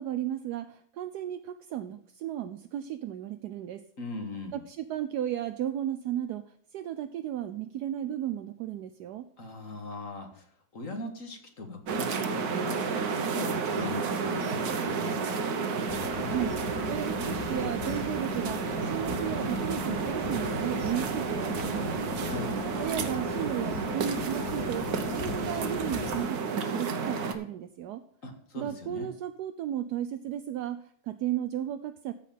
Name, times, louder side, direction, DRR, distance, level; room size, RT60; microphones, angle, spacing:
voice 1, 0.0-3.8 4.5-6.4 6.7-9.2 16.2-22.0 22.8-28.0 28.5-32.1, right 11 dB, 70° right, 10 dB, 1.0 m, -34 dB
voice 2, 4.0-4.6 9.4-10.5 10.7-12.9 13.2-15.4 22.2-22.5 28.2-29.1, left 2 dB, 45° left, 4 dB, 1.9 m, -39 dB
sound 1, 11.9-27.4, right 5 dB, 55° right, 1.4 m, -31 dB
sound 2, 15.9-26.3, left 10 dB, 75° left, 1.5 m, -39 dB
14.5 x 5.1 x 5.7 m, 0.67 s
omnidirectional pair, 2.1 m